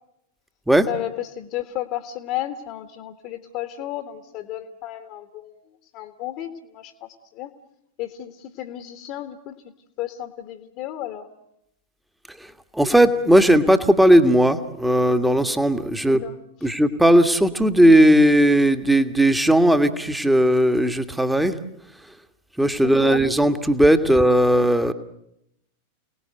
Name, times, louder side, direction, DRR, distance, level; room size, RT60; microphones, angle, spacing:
voice 1, 0.9-5.6 5.9-7.5 8.0-9.7 10.0-11.3 16.0-16.7 22.8-23.2, left 13 dB, 40° left, 8 dB, 1.7 m, -33 dB
voice 2, 12.7-16.2 16.6-21.6 22.6-24.9, right 1 dB, 5° right, 9 dB, 1.7 m, -17 dB
29.5 x 19.5 x 7.9 m, 0.81 s
figure-of-eight pair, 90°, 0 cm